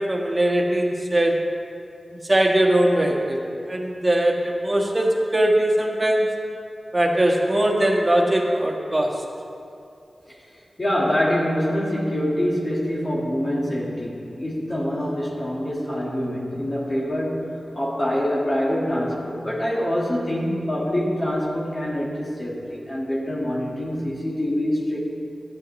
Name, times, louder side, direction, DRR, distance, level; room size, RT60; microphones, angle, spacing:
voice 1, 0.0-1.4 2.3-6.3 6.9-9.2, right 1 dB, 25° right, -1 dB, 1.5 m, -21 dB
voice 2, 10.8-25.1, equal, 35° left, -6 dB, 1.8 m, -25 dB
13.5 x 9.1 x 3.2 m, 2.6 s
cardioid pair, 55°, 0 cm